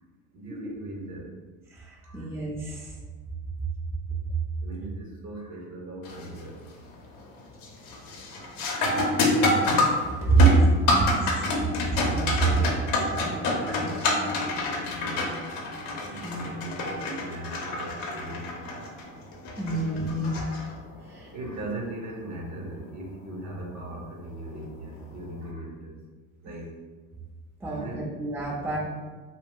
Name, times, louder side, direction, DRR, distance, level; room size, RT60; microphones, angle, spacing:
voice 1, 0.3-1.4 2.0-2.3 4.6-6.7 8.3-8.5 10.2-11.1 12.4-15.5 16.0-18.7 19.7-19.9 21.3-26.0 26.4-26.7 27.6-28.1 28.7-28.8, right 1 dB, 50° right, -2 dB, 0.8 m, -39 dB
voice 2, 1.7-2.9 11.9-12.7 16.2-16.7 19.6-20.3 21.1-21.3 27.6-28.8, right 3 dB, 5° right, -4 dB, 0.5 m, -30 dB
sound 1, 6.0-6.4 6.8-7.3 7.6-21.1 23.6-23.7 24.6-24.8, left 2 dB, 65° left, 0.7 m, -27 dB
2.3 x 2.0 x 3.6 m, 1.3 s
supercardioid pair, 85°, 37 cm